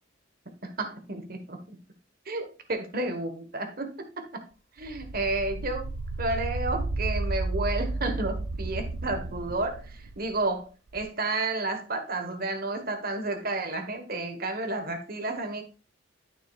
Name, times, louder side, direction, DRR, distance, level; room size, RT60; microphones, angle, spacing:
voice 1, 0.6-1.8 2.3-4.4 4.8-5.9 6.2-10.7 10.9-15.6, right 2 dB, 50° right, 6 dB, 1.4 m, -31 dB
sound 1, 4.9-10.4 10.9-11.0, right 2 dB, 75° right, 0.7 m, -32 dB
12.5 x 6.2 x 2.4 m, 0.34 s
head